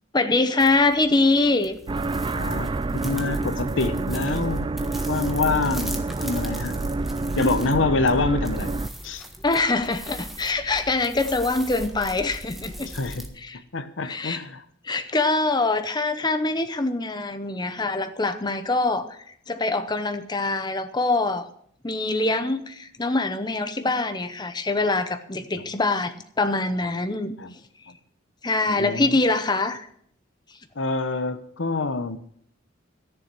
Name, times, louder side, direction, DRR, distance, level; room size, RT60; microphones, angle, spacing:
voice 1, 0.1-1.8 9.4-12.9 13.4-13.6 14.0-14.4 14.8-21.5 21.8-27.3 28.4-29.9, left 3 dB, 20° left, 9 dB, 0.8 m, -24 dB
sound 1, 0.6-13.3, equal, ahead, 1.4 m, -41 dB
sound 2, 1.9-8.9, right 2 dB, 25° right, 0.4 m, -28 dB
voice 2, 2.3-6.8 7.3-8.7 9.0-9.2 12.9-13.3 13.7-14.6 27.4-27.5 28.8-29.2 30.8-32.2, left 3 dB, 75° left, 12 dB, 0.9 m, -26 dB
14.0 x 7.0 x 7.6 m, 0.65 s
head